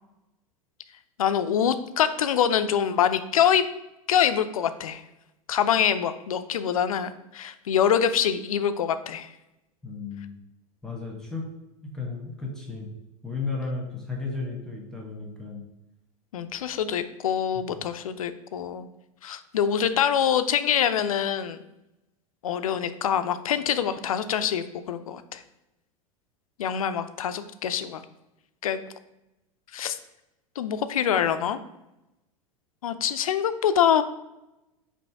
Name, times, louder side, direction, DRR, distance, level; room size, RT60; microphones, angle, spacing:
voice 1, 1.2-3.6 4.1-5.0 5.5-9.3 16.3-18.9 19.2-21.6 22.4-25.4 26.6-28.0 28.6-28.8 29.7-30.0 30.6-31.6 32.8-34.0, left 8 dB, 75° left, 11 dB, 0.4 m, -25 dB
voice 2, 9.8-10.3 10.8-11.5 11.8-12.9 13.2-15.6 17.5-17.6, left 4 dB, 5° left, -1 dB, 1.3 m, -34 dB
5.2 x 2.7 x 3.4 m, 0.93 s
figure-of-eight pair, 85°, 18 cm